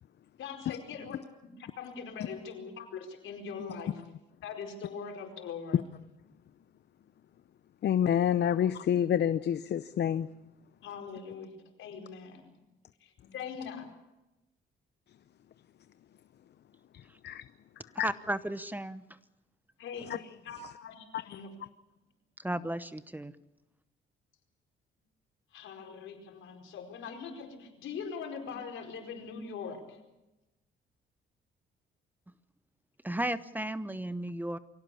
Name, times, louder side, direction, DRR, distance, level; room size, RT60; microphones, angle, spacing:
voice 1, 0.4-4.0 4.4-5.8 8.5-8.6 10.8-12.5 13.0-13.9 17.8-17.9 19.8-20.2 20.4-21.6 25.5-30.0, left 6 dB, 80° left, 4.7 m, -42 dB
voice 2, 7.8-10.3 17.2-17.4 18.0-18.1, left 9 dB, 60° left, 0.7 m, -27 dB
voice 3, 18.0-19.0 22.4-23.3 33.0-34.6, right 1 dB, 10° right, 0.9 m, -34 dB
23.5 x 17.0 x 8.5 m
cardioid pair, 90°, 20 cm